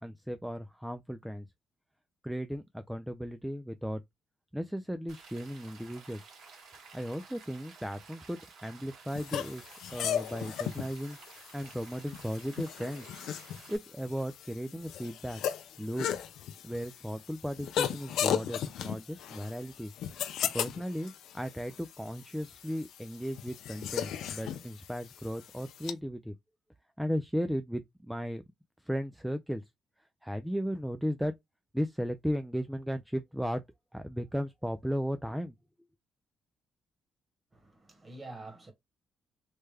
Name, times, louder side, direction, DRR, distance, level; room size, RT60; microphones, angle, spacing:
voice 1, 0.0-1.5 2.2-4.0 4.5-6.2 6.9-11.2 11.5-13.1 13.7-15.4 15.8-16.1 16.6-19.9 20.5-26.3 27.0-28.4 28.8-29.6 30.2-31.3 31.7-33.6 33.9-35.5, equal, 5° right, 0.3 m, -36 dB
Rain, 5.1-13.8, right 4 dB, 75° right, 1.5 m, -53 dB
sound 1, 9.1-25.9, left 9 dB, 80° left, 0.4 m, -37 dB
voice 2, 37.5-38.7, right 2 dB, 25° right, 1.4 m, -47 dB
3.3 x 2.1 x 3.3 m
cardioid pair, 90°, 0 cm